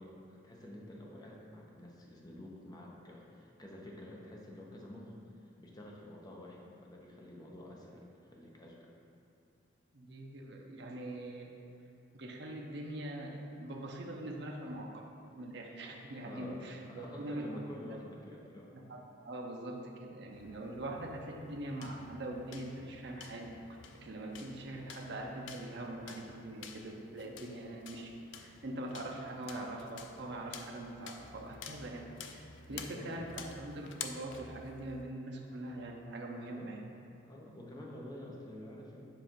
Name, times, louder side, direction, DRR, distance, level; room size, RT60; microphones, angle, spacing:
voice 1, 0.0-5.2 5.6-8.9 16.2-16.6 16.9-18.7 32.7-33.1 36.5-36.7 37.2-39.0, left 1 dB, 20° left, -2 dB, 0.7 m, -49 dB
voice 2, 9.9-11.5 12.1-14.9 15.3-17.5 17.8-18.0 18.9-23.5 24.0-32.4 32.7-36.8, right 1 dB, 60° right, 0 dB, 0.6 m, -43 dB
sound 1, 20.3-35.1, left 6 dB, 75° left, 0.4 m, -51 dB
7.3 x 2.5 x 5.2 m, 2.7 s
head